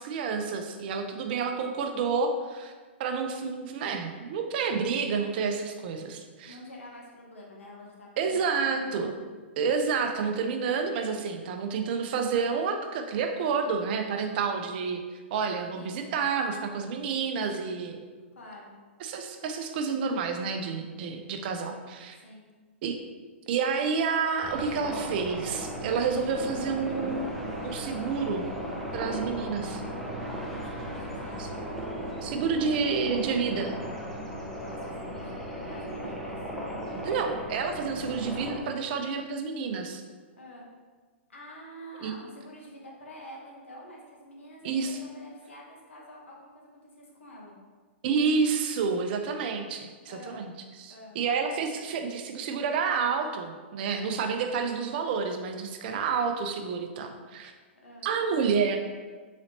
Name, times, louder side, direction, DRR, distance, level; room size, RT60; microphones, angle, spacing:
voice 1, 0.0-2.7 3.0-6.5 8.2-9.1 9.6-15.0 15.3-18.0 19.0-22.2 22.8-22.9 23.5-28.5 28.9-29.8 31.4-31.5 32.2-33.7 37.0-40.0 42.0-42.1 44.6-45.0 48.0-50.5 50.8-57.5 58.0-58.8, right 5 dB, 50° right, 5 dB, 0.5 m, -29 dB
voice 2, 6.5-8.9 15.7-16.0 18.3-18.7 22.2-22.4 30.7-31.4 34.6-36.4 40.4-40.7 41.3-47.6 50.1-50.4 50.9-51.2 57.8-58.1, equal, 85° left, -2 dB, 1.0 m, -47 dB
sound 1, 24.4-38.6, equal, 5° left, 0.5 m, -36 dB
3.9 x 3.1 x 2.8 m, 1.4 s
hypercardioid pair, 125°, 7 cm